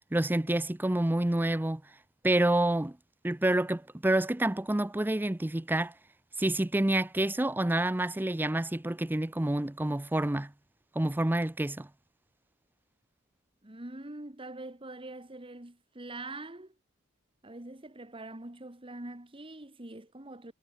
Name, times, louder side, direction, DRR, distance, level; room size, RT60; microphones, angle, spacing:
voice 1, 0.1-1.8 2.2-3.0 3.2-5.9 6.4-10.5 11.0-11.9, right 1 dB, 10° right, 0.5 m, -28 dB
voice 2, 13.6-16.8 17.4-20.5, right 2 dB, 25° right, 1.7 m, -44 dB
head